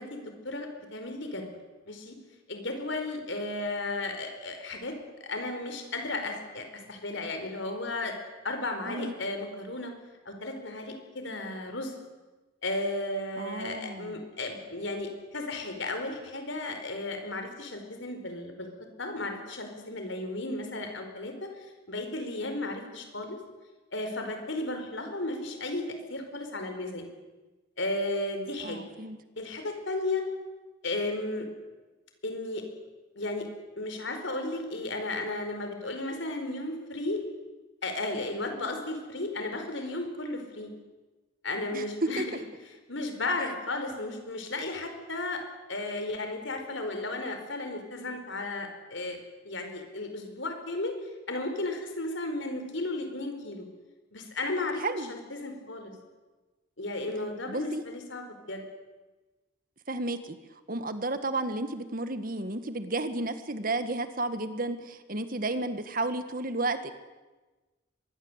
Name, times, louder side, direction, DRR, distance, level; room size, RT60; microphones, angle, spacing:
voice 1, 0.0-1.4 1.9-2.1 2.5-8.1 8.4-9.9 10.2-11.9 12.6-18.7 19.0-23.4 23.9-27.1 27.8-28.8 29.4-30.2 30.8-31.5 32.2-32.6 33.1-33.5 33.8-37.2 37.8-40.7 41.4-42.3 42.9-45.4 45.7-49.2 49.4-50.9 51.3-53.7 54.1-55.9 56.8-58.6, left 2 dB, 65° left, 6 dB, 4.8 m, -34 dB
voice 2, 13.4-14.1 28.6-29.2 41.7-41.8 42.2-42.3 54.8-55.1 57.5-57.8 59.9-60.4 60.7-66.9, right 2 dB, 45° right, 10 dB, 1.7 m, -32 dB
24.0 x 21.5 x 8.2 m, 1.2 s
head